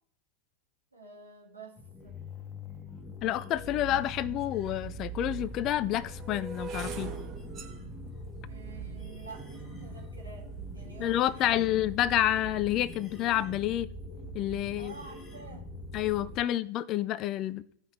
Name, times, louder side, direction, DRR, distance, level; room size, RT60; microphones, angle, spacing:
voice 1, 0.9-2.2 8.5-11.8 14.8-15.7, right 4 dB, 80° right, 2.4 m, -49 dB
sound 1, 1.8-16.4, right 1 dB, 20° left, 1.3 m, -42 dB
voice 2, 3.2-7.1 11.0-13.9 14.3-14.9 15.9-17.6, left 13 dB, 35° left, 0.5 m, -29 dB
sound 2, 4.4-4.5 5.3-11.4 12.1-12.5 12.7-13.1, right 4 dB, 30° right, 1.4 m, -45 dB
16.0 x 5.7 x 3.1 m
figure-of-eight pair, 90°, 0 cm